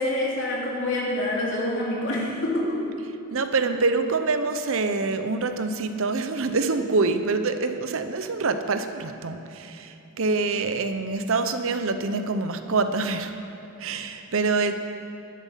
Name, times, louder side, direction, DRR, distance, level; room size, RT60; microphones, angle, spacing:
voice 1, 0.0-2.8, left 1 dB, 55° left, -4 dB, 3.1 m, -26 dB
voice 2, 3.3-13.3 13.8-14.8, right 3 dB, 60° right, 8 dB, 0.8 m, -25 dB
12.0 x 11.5 x 5.8 m, 2.9 s
head